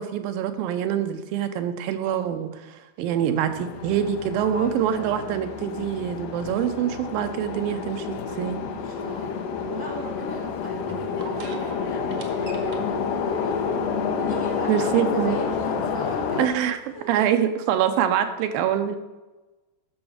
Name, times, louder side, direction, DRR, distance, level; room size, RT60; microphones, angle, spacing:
voice 1, 0.0-8.6 14.7-15.4 16.4-16.8 17.1-19.0, right 10 dB, 85° right, 7 dB, 2.4 m, -25 dB
sound 1, 3.5-16.5, left 6 dB, 75° left, 2.2 m, -29 dB
voice 2, 4.3-5.4 8.7-13.6 14.1-16.6 16.9-17.2 18.1-18.3, equal, 55° left, -2 dB, 0.8 m, -38 dB
sound 2, 8.7-17.2, right 4 dB, 70° right, 1.5 m, -46 dB
12.0 x 6.2 x 5.0 m, 1.1 s
omnidirectional pair, 4.1 m